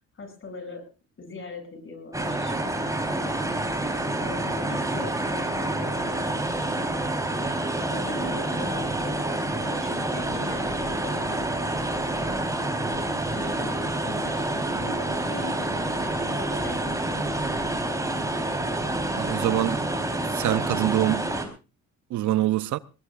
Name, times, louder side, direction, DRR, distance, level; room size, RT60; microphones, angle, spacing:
voice 1, 0.1-0.8 1.2-3.5 4.2-7.5 7.9-12.5 13.3-13.7 14.0-18.0 18.7-19.3, left 3 dB, 45° left, 7.5 m, -41 dB
sound 1, 2.1-21.5, right 2 dB, 10° right, 3.9 m, -28 dB
voice 2, 19.2-19.8 20.3-21.3 22.1-22.8, right 15 dB, 75° right, 0.6 m, -24 dB
21.0 x 19.0 x 2.5 m
cardioid pair, 90°, 30 cm